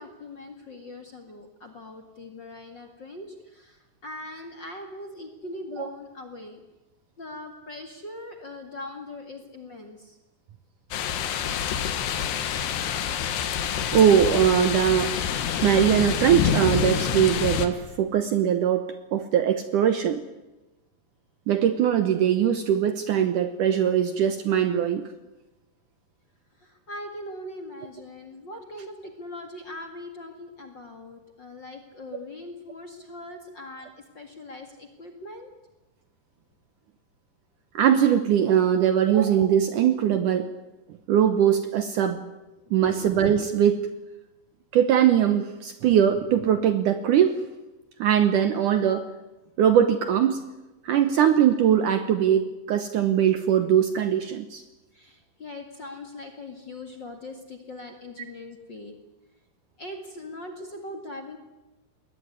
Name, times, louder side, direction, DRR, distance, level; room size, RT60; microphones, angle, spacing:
voice 1, 0.0-6.6 7.2-10.2 26.6-35.5 42.6-43.1 54.9-59.0 59.8-61.4, left 2 dB, 40° left, 5 dB, 2.0 m, -41 dB
sound 1, 10.9-17.7, left 8 dB, 90° left, 3.7 m, -27 dB
voice 2, 13.9-15.2 15.6-20.2 21.5-25.1 37.7-40.5 41.1-42.2 42.7-43.8 44.7-47.4 48.0-49.1 49.6-50.4 50.8-54.6, right 9 dB, 70° right, 10 dB, 2.1 m, -21 dB
21.5 x 18.5 x 9.6 m, 1.1 s
omnidirectional pair, 4.6 m